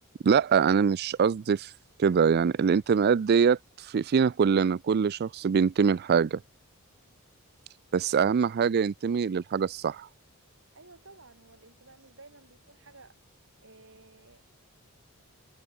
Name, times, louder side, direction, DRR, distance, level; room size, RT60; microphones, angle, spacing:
voice 1, 0.2-1.7 2.0-6.4 7.9-10.1, right 6 dB, 45° right, 0.3 m, -24 dB
voice 2, 10.7-13.2 13.6-14.4, right 3 dB, 60° right, 6.7 m, -54 dB
head